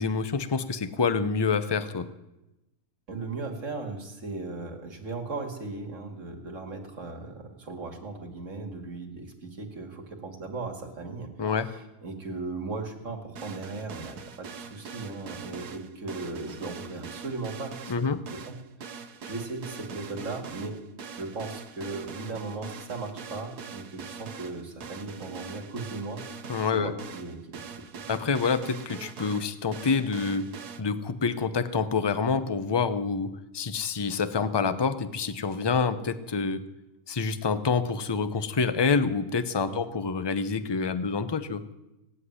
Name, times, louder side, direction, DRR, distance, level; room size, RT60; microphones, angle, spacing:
voice 1, 0.0-2.1 11.4-11.7 17.9-18.2 26.5-26.9 28.1-30.5 30.8-36.6 37.1-41.6, left 5 dB, 25° left, 12 dB, 0.5 m, -27 dB
voice 2, 3.1-20.8 21.1-28.0 39.7-39.9, right 3 dB, 55° right, 3 dB, 2.5 m, -37 dB
sound 1, 13.4-30.8, right 5 dB, 90° right, 1.5 m, -43 dB
18.5 x 8.2 x 9.6 m, 0.97 s
omnidirectional pair, 1.6 m